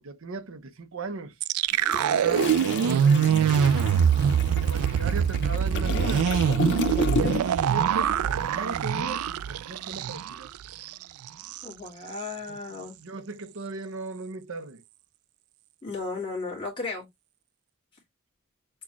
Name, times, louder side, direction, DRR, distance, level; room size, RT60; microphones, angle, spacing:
voice 1, 0.0-1.3 2.0-3.4 4.6-6.3 7.1-10.5 12.5-14.8, right 3 dB, 65° right, 0.7 m, -37 dB
sound 1, 1.4-10.4 10.7-10.9 11.3-11.7, right 8 dB, 90° right, 0.3 m, -24 dB
Toilet flush, 1.7-7.7 8.0-8.2, left 5 dB, 55° left, 0.6 m, -33 dB
voice 2, 11.6-13.0 15.8-17.1, left 3 dB, 25° left, 1.7 m, -34 dB
6.1 x 2.3 x 3.0 m
head